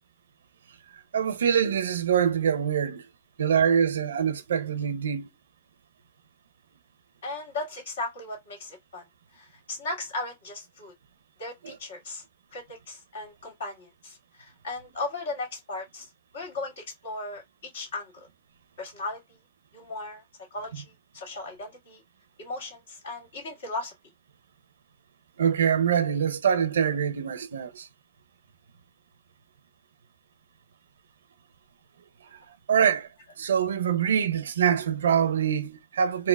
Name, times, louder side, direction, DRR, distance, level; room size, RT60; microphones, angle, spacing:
voice 1, 1.1-3.0 3.4-5.3 11.6-11.7 25.4-27.9 32.3-32.4 32.7-33.1 33.4-36.3, right 8 dB, 80° right, 0.6 m, -24 dB
voice 2, 7.2-9.0 9.3-10.9 11.4-12.2 12.5-18.3 18.8-19.2 19.7-20.2 20.5-22.0 22.4-23.9, left 2 dB, 75° left, 1.8 m, -37 dB
4.1 x 2.1 x 2.2 m
hypercardioid pair, 115°, 0 cm